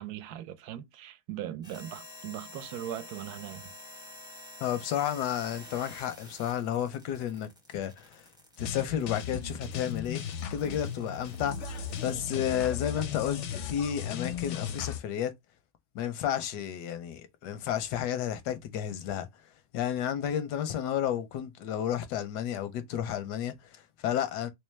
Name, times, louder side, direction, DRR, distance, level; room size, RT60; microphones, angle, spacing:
voice 1, 0.0-3.7, right 11 dB, 75° right, 1.0 m, -39 dB
sound 1, 1.6-12.1, left 1 dB, 5° right, 0.4 m, -50 dB
voice 2, 4.6-8.2 8.6-15.3 15.9-19.3 19.7-24.5, left 10 dB, 85° left, 1.2 m, -32 dB
sound 2, 8.6-15.0, left 8 dB, 65° left, 0.7 m, -36 dB
3.3 x 3.2 x 3.2 m
omnidirectional pair, 1.7 m